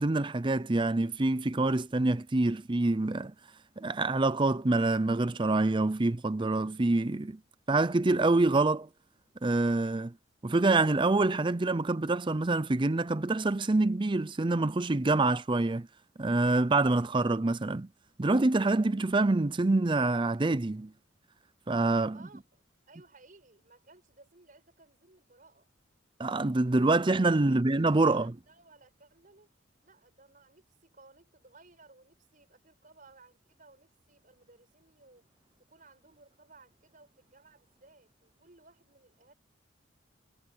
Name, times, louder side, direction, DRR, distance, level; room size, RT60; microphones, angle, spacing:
voice 1, 0.0-3.3 3.8-7.4 7.7-8.9 9.4-10.1 10.4-15.9 16.2-17.9 18.2-20.9 21.7-22.2 26.2-28.3, right 2 dB, 25° right, 0.5 m, -26 dB
voice 2, 22.1-25.7 27.5-27.7 27.9-29.5 29.8-35.3 35.7-39.3, right 3 dB, 45° right, 5.6 m, -59 dB
head